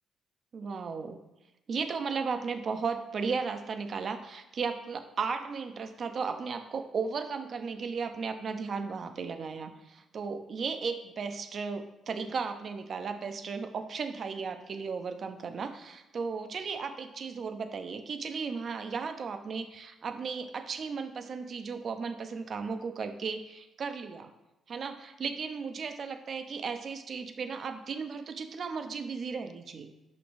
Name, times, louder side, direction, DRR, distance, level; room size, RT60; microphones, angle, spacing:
voice 1, 0.5-1.2 1.7-24.3 24.7-29.9, right 5 dB, 50° right, 8 dB, 0.6 m, -35 dB
6.4 x 5.9 x 2.6 m, 0.98 s
cardioid pair, 90°, 0 cm